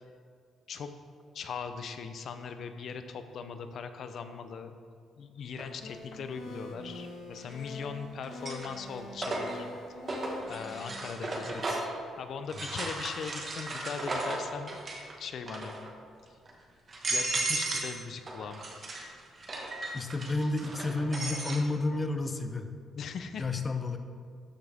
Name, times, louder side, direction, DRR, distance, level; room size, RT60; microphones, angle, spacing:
voice 1, 1.3-4.8 5.2-9.7 10.5-11.5 11.8-14.8 15.2-15.8 17.1-18.6 22.9-23.6, left 6 dB, 65° left, 8 dB, 0.7 m, -40 dB
sound 1, 5.6-5.7 7.4-7.8 8.2-12.0 12.5-15.1 15.4-15.9 16.5-16.6 16.9-18.0 18.3-21.6, right 2 dB, 40° right, 1.6 m, -35 dB
sound 2, 5.8-10.8, left 2 dB, 85° left, 1.5 m, -44 dB
voice 2, 11.4-11.8 19.9-22.7 23.4-24.0, left 2 dB, 25° left, 7 dB, 0.7 m, -31 dB
12.5 x 6.2 x 3.6 m, 2.1 s
cardioid pair, 90°, 0 cm